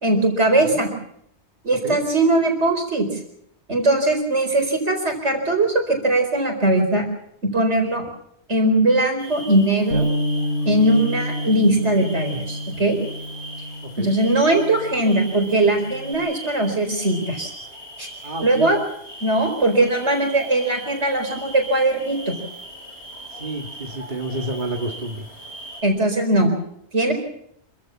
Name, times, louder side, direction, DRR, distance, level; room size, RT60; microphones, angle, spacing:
voice 1, 0.0-0.9 1.6-3.1 3.7-7.0 7.4-8.0 8.5-10.1 10.6-13.0 14.0-17.5 18.0-18.1 18.4-18.8 19.2-22.3 25.8-26.5 26.9-27.1, right 2 dB, 80° right, 4 dB, 4.8 m, -20 dB
sound 1, 9.2-25.8, right 1 dB, 70° left, 4.5 m, -39 dB
Bass guitar, 9.9-16.2, equal, 90° left, 2.5 m, -29 dB
voice 2, 18.2-18.7 23.3-25.3, right 2 dB, 45° right, 2 dB, 1.9 m, -29 dB
26.5 x 15.0 x 7.2 m, 0.72 s
omnidirectional pair, 1.2 m